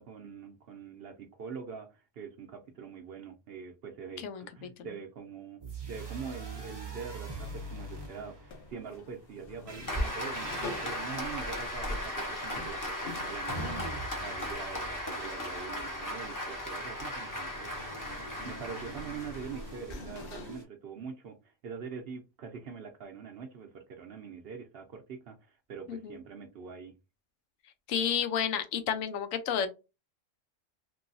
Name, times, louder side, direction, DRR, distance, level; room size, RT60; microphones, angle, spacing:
voice 1, 0.0-17.8 18.4-26.9, right 6 dB, 60° right, 0.7 m, -44 dB
voice 2, 4.2-4.7 25.9-26.2 27.9-29.7, left 8 dB, 90° left, 1.0 m, -31 dB
sound 1, 5.6-8.9 9.7-12.2 13.5-15.6 17.8-20.6, right 2 dB, 25° right, 0.5 m, -44 dB
sound 2, 8.5-20.6, left 2 dB, 55° left, 0.8 m, -46 dB
Applause, 9.9-19.9, left 1 dB, 20° left, 0.7 m, -37 dB
3.1 x 2.6 x 2.6 m
omnidirectional pair, 1.3 m